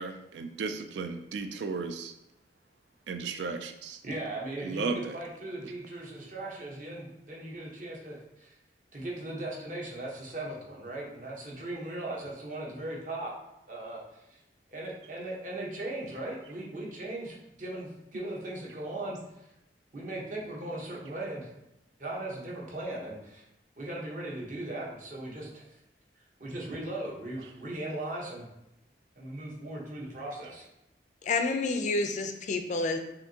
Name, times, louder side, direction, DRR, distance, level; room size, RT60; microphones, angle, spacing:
voice 1, 0.0-2.1 3.1-4.0 4.6-5.2, right 4 dB, 80° right, 7 dB, 0.3 m, -35 dB
voice 2, 4.0-8.6 8.9-13.3 13.7-14.4 14.7-19.2 19.9-21.5 22.0-23.4 23.8-25.7 26.4-28.5 29.2-30.6, right 1 dB, 45° right, -3 dB, 1.0 m, -38 dB
voice 3, 31.2-33.0, left 3 dB, 45° left, 6 dB, 0.4 m, -29 dB
5.7 x 2.6 x 2.8 m, 0.88 s
head